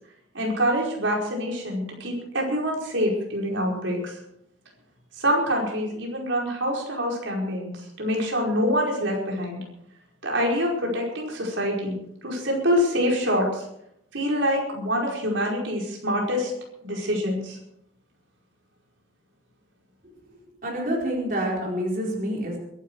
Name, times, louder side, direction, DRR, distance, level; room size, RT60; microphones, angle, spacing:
voice 1, 0.3-4.2 5.2-7.7 8.0-9.6 10.2-11.9 12.2-13.6 14.1-16.5 16.8-17.6, equal, 90° right, -1 dB, 5.0 m, -25 dB
voice 2, 20.6-22.6, equal, 45° right, -2 dB, 4.4 m, -27 dB
22.5 x 12.0 x 4.8 m, 0.77 s
head